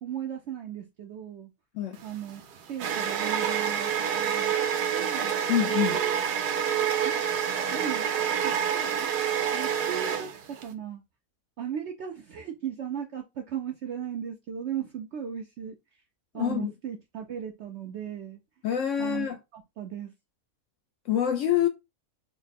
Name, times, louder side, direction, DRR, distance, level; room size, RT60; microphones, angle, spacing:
voice 1, 0.0-1.5 2.0-2.4 2.7-4.6 4.9-5.4 5.9-6.2 7.0-7.2 7.7-8.1 8.4-9.2 9.5-11.0 11.6-15.8 16.3-18.4 19.0-20.1, right 9 dB, 70° right, 0.7 m, -37 dB
sound 1, 2.0-10.7, right 8 dB, 85° right, 1.2 m, -28 dB
voice 2, 5.5-6.0 16.3-16.7 18.6-19.4 21.1-21.7, left 10 dB, 65° left, 0.8 m, -26 dB
3.5 x 2.0 x 4.0 m
omnidirectional pair, 1.6 m